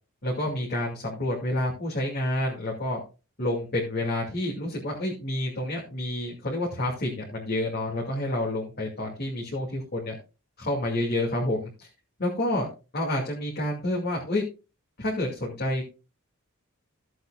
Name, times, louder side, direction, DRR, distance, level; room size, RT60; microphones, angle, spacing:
voice 1, 0.2-3.0 3.4-10.2 10.6-11.9 12.2-12.7 12.9-14.4 15.0-15.8, left 1 dB, 45° left, -3 dB, 2.4 m, -29 dB
16.0 x 7.8 x 2.3 m, 0.31 s
head